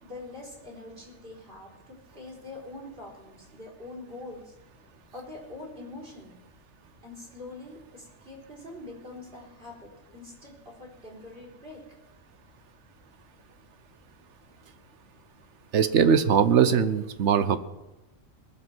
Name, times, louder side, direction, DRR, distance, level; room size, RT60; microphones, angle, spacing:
voice 1, 0.0-4.5 5.1-6.3 7.0-11.8, left 2 dB, 45° right, -2 dB, 4.4 m, -44 dB
voice 2, 15.7-17.6, right 7 dB, 60° right, 12 dB, 1.1 m, -21 dB
20.5 x 7.5 x 6.1 m, 1.0 s
omnidirectional pair, 1.4 m